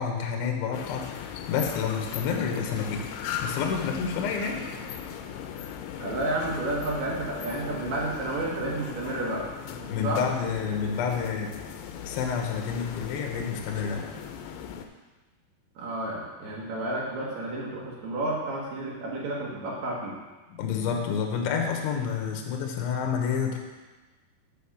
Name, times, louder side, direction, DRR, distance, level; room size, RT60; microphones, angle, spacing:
voice 1, 0.0-3.1 3.4-4.6 9.9-11.5 12.0-14.1 20.5-23.6, left 6 dB, 70° left, 1 dB, 2.5 m, -29 dB
sound 1, 0.7-14.9, left 8 dB, 85° left, 3.0 m, -38 dB
voice 2, 6.0-9.5 10.0-10.2 15.7-20.2, right 2 dB, 75° right, -5 dB, 1.6 m, -31 dB
6.9 x 5.1 x 7.1 m, 1.2 s
omnidirectional pair, 5.2 m